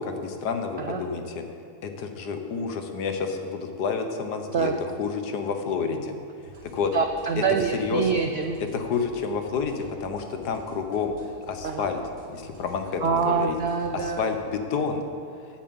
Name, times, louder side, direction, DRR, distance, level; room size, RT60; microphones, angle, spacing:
voice 1, 0.0-1.4 1.8-6.2 6.6-6.9 7.4-7.5 7.7-8.1 8.6-11.1 11.5-12.0 12.3-13.5 13.9-15.0, left 5 dB, 80° left, 6 dB, 1.6 m, -29 dB
sound 1, 6.4-14.4, equal, 40° right, 2.3 m, -49 dB
voice 2, 6.9-8.6 11.6-11.9 13.0-14.3, right 5 dB, 80° right, 5 dB, 0.5 m, -25 dB
9.3 x 7.4 x 8.6 m, 2.3 s
omnidirectional pair, 1.7 m